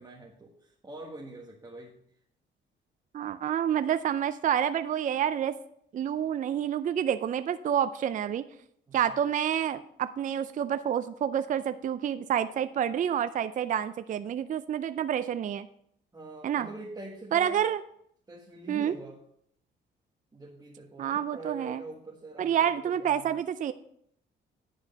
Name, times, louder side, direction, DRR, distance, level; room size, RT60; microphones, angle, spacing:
voice 1, 0.0-2.0 8.9-9.2 16.1-17.7 18.3-19.2 20.3-23.4, right 2 dB, 20° right, -2 dB, 1.4 m, -44 dB
voice 2, 3.1-5.5 5.9-8.4 8.9-15.7 16.4-16.7 17.3-17.8 18.7-18.9 21.0-21.8 22.4-23.7, right 9 dB, 40° right, 12 dB, 0.4 m, -28 dB
9.8 x 4.7 x 5.2 m, 0.70 s
cardioid pair, 90°, 20 cm